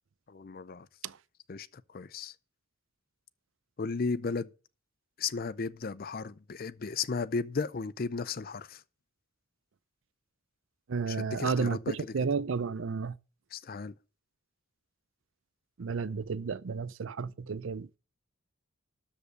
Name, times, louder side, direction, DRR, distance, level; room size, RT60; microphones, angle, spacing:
voice 1, 0.3-0.9 1.5-2.3 3.8-4.5 5.2-8.8 11.1-12.1 13.5-14.0, left 4 dB, 45° left, 0.5 m, -35 dB
voice 2, 10.9-13.2 15.8-17.9, right 5 dB, 70° right, 0.5 m, -32 dB
12.5 x 5.4 x 6.5 m
head